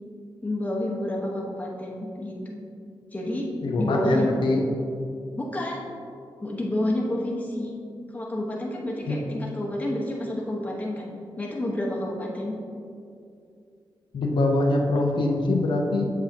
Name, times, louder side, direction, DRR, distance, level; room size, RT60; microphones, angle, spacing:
voice 1, 0.4-2.6 3.1-3.5 3.8-4.6 5.4-5.8 6.4-7.8 8.1-12.6, left 1 dB, 15° left, -3 dB, 1.2 m, -29 dB
voice 2, 3.6-4.6 9.0-9.2 14.1-16.1, left 2 dB, 70° left, 0 dB, 0.7 m, -23 dB
7.6 x 7.2 x 2.9 m, 2.5 s
wide cardioid pair, 110°, 9 cm